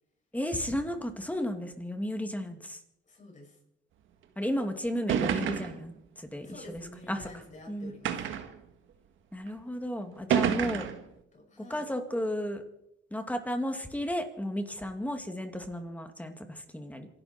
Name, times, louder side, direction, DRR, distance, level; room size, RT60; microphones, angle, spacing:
voice 1, 0.3-2.8 4.4-6.8 7.1-7.3 7.7-7.9 9.3-10.9 11.7-12.6 13.1-17.1, equal, 5° left, 6 dB, 2.4 m, -33 dB
voice 2, 3.1-3.6 6.4-8.4 11.3-11.9, left 1 dB, 40° left, 0 dB, 6.9 m, -49 dB
sound 1, 4.5-4.6 5.1-5.9 6.8-6.9 8.0-8.6 9.5-9.6 10.3-11.1, right 8 dB, 80° right, 1.7 m, -28 dB
27.0 x 12.0 x 4.5 m, 0.81 s
cardioid pair, 90°, 20 cm